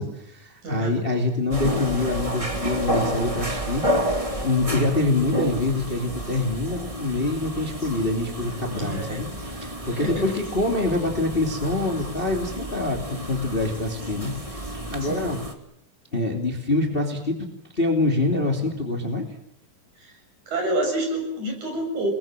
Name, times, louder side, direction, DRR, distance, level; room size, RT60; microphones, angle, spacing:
voice 1, 0.0-15.4 16.1-17.5 17.7-19.3, left 2 dB, 15° left, 2 dB, 2.7 m, -25 dB
voice 2, 0.6-1.0 8.8-9.2 9.9-10.2 15.0-15.3 20.0-20.1 20.5-22.1, right 1 dB, 55° right, 3 dB, 8.2 m, -28 dB
sound 1, 1.5-15.5, equal, 10° right, 2.0 m, -30 dB
28.5 x 21.0 x 7.6 m, 0.76 s
omnidirectional pair, 4.1 m